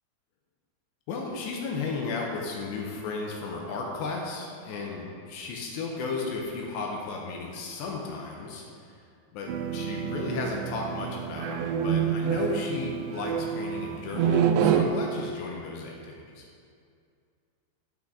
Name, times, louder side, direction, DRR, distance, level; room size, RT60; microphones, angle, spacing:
voice 1, 1.1-9.0 9.3-16.5, left 4 dB, 80° left, -1 dB, 2.8 m, -34 dB
sound 1, 9.5-14.9, right 8 dB, 85° right, 2.5 m, -27 dB
12.5 x 6.1 x 3.7 m, 2.3 s
omnidirectional pair, 5.4 m